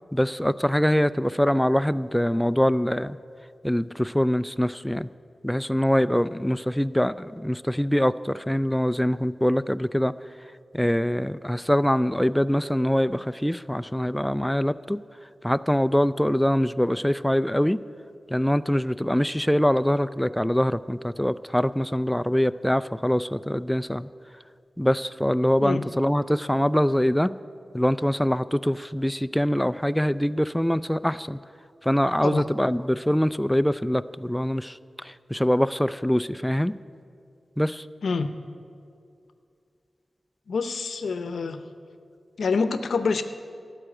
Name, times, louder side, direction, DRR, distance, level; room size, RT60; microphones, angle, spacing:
voice 1, 0.1-3.2 3.6-5.1 5.4-10.1 10.7-15.0 15.4-17.8 18.3-24.1 24.8-27.3 27.7-31.4 31.8-36.7 37.6-37.9, equal, 5° left, 13 dB, 0.3 m, -24 dB
voice 2, 40.5-41.6 42.4-43.2, left 4 dB, 85° left, 10 dB, 0.7 m, -26 dB
12.5 x 7.7 x 9.9 m, 2.4 s
cardioid pair, 50°, 0 cm